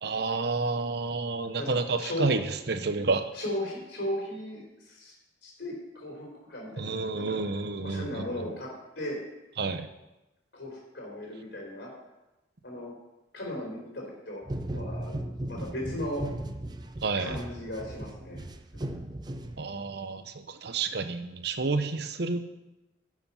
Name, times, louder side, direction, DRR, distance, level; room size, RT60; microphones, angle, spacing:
voice 1, 0.0-3.2 6.8-8.3 9.6-9.9 17.0-17.4 19.6-22.4, right 3 dB, 60° right, 9 dB, 0.8 m, -30 dB
voice 2, 1.6-2.3 3.3-5.1 5.4-8.7 9.0-9.2 10.5-11.9 12.6-12.9 13.3-14.4 14.7-15.2 15.5-16.2 17.2-18.4 18.7-19.0, left 1 dB, 65° left, -2 dB, 4.1 m, -37 dB
sound 1, 14.4-20.0, right 1 dB, 20° right, 0.5 m, -37 dB
11.0 x 7.2 x 5.6 m, 1.0 s
head